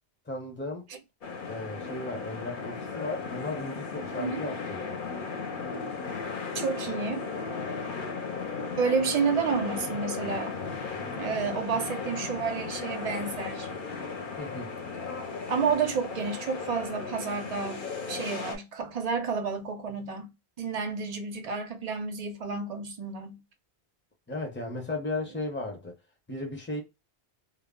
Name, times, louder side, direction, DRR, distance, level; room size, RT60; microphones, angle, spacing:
voice 1, 0.3-0.9 1.5-5.0 14.4-14.8 24.3-25.9 26.3-26.8, left 2 dB, 15° left, 0.5 m, -35 dB
sound 1, 1.2-18.6, left 4 dB, 55° left, 0.7 m, -36 dB
voice 2, 6.5-7.3 8.8-10.5 11.2-13.7 15.5-23.4, right 5 dB, 50° right, 0.4 m, -30 dB
2.2 x 2.0 x 3.5 m
omnidirectional pair, 1.1 m